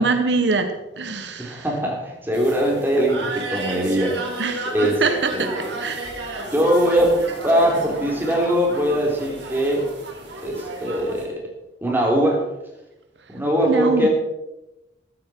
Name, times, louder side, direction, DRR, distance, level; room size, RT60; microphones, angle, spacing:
voice 1, 0.0-1.7 4.4-4.7 5.0-5.5 5.8-6.1 13.6-14.1, right 3 dB, 75° right, 7 dB, 1.2 m, -23 dB
voice 2, 1.1-4.2 4.7-5.0 5.3-5.6 6.4-7.2 7.4-9.9 10.4-11.4 11.8-12.4 13.3-14.1, equal, 10° right, -1 dB, 3.9 m, -21 dB
sound 1, 2.3-11.3, right 2 dB, 90° right, 4.0 m, -33 dB
14.0 x 13.5 x 4.6 m, 0.94 s
head